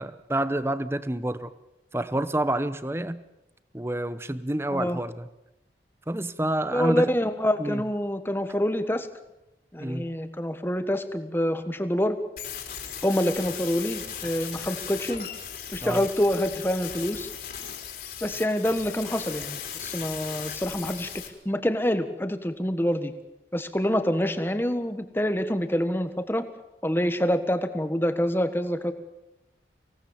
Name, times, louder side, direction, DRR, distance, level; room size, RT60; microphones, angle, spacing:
voice 1, 0.0-1.5 1.9-3.2 3.7-5.3 6.1-7.1 7.6-7.8 9.8-10.1 15.8-16.0, right 1 dB, 15° right, 13 dB, 0.9 m, -28 dB
voice 2, 6.7-9.1 9.7-12.2 13.0-15.3 15.7-17.3 18.2-21.1 21.4-23.1 23.5-26.4 26.8-28.9, equal, 10° left, 9 dB, 1.4 m, -26 dB
sound 1, 12.4-21.3, left 8 dB, 55° left, 4.1 m, -37 dB
25.0 x 18.0 x 7.3 m, 0.90 s
head